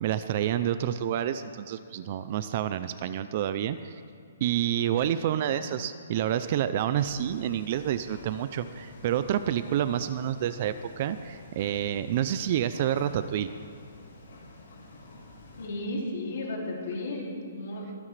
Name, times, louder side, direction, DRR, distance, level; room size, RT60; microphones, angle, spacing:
voice 1, 0.0-4.0 4.4-13.5, right 10 dB, 30° right, 12 dB, 0.3 m, -28 dB
sound 1, 7.0-15.7, left 2 dB, 65° left, 3.1 m, -49 dB
voice 2, 15.6-18.0, left 1 dB, 50° left, -1 dB, 2.6 m, -34 dB
23.5 x 9.7 x 3.3 m, 2.3 s
hypercardioid pair, 175°, 0 cm